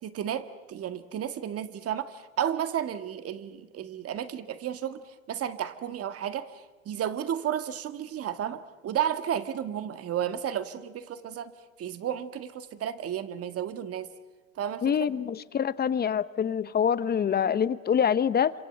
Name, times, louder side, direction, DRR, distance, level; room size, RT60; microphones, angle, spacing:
voice 1, 0.0-11.5 11.8-14.1 14.6-15.1, right 10 dB, 35° right, 10 dB, 1.9 m, -33 dB
voice 2, 14.8-18.5, left 8 dB, 25° left, 16 dB, 1.0 m, -25 dB
27.5 x 26.5 x 7.9 m, 1.2 s
hypercardioid pair, 100°, 41 cm